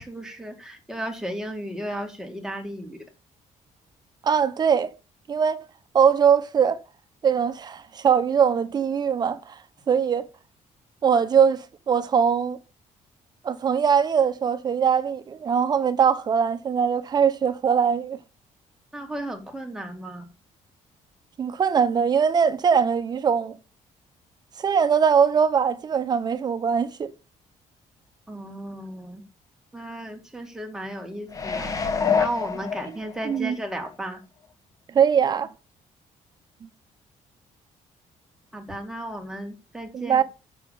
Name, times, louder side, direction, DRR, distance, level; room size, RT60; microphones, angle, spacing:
voice 1, 0.0-3.0 18.9-20.2 28.3-29.2 29.7-31.7 32.2-34.2 38.5-40.2, right 1 dB, 5° right, 2.2 m, -34 dB
voice 2, 4.2-4.9 5.3-5.6 5.9-6.8 7.2-9.6 9.9-10.2 11.0-12.6 13.4-18.2 21.4-23.6 24.6-27.1 33.2-33.6 34.9-35.5 39.9-40.2, right 7 dB, 30° right, 0.9 m, -21 dB
sound 1, 31.3-33.4 33.9-34.0, left 6 dB, 25° left, 1.3 m, -26 dB
7.1 x 6.8 x 7.2 m
cardioid pair, 170°, 13 cm